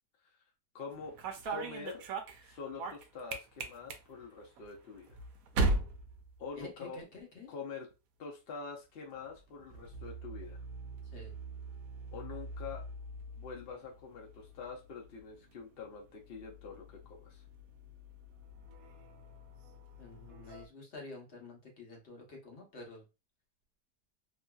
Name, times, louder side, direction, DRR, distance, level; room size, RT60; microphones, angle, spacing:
voice 1, 0.7-1.2 1.4-2.0 2.4-5.1 6.4-7.0 7.5-7.9 8.2-10.6 12.1-12.9 13.3-17.4, left 5 dB, 70° left, -1 dB, 0.5 m, -45 dB
sound 1, 0.9-7.1 7.4-7.9 9.0-20.7, right 2 dB, 70° right, 0.9 m, -41 dB
voice 2, 6.5-7.5 11.1-11.3 20.0-23.0, left 3 dB, 45° left, -1 dB, 1.1 m, -49 dB
2.9 x 2.6 x 2.2 m, 0.29 s
omnidirectional pair, 1.8 m